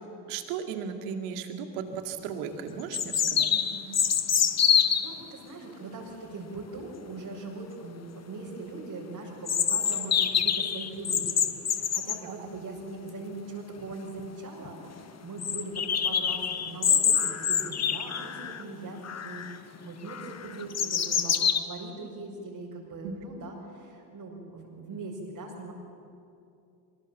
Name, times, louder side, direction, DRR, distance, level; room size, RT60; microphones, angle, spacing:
voice 1, 0.3-3.5 12.2-12.5 23.0-23.1, right 7 dB, 70° right, 5 dB, 2.3 m, -36 dB
sound 1, 1.9-2.0 2.9-5.1 9.5-12.2 13.8-13.9 14.2-14.3 14.7-14.8 15.4-18.6 19.0-19.6 20.1-21.6, left 7 dB, 30° left, 1.4 m, -26 dB
voice 2, 3.5-4.1 5.0-25.7, right 3 dB, 45° right, -4 dB, 5.9 m, -41 dB
23.5 x 22.0 x 7.4 m, 2.6 s
hypercardioid pair, 60°, 49 cm